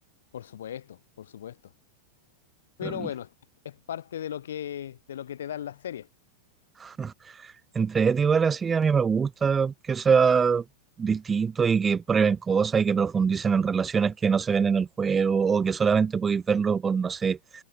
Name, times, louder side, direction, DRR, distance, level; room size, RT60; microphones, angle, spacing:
voice 1, 0.3-1.6 2.8-3.3 3.6-6.1, left 10 dB, 85° left, 7.1 m, -37 dB
voice 2, 6.8-10.6 11.0-17.4, right 6 dB, 20° right, 1.1 m, -24 dB
hypercardioid pair, 120°, 0 cm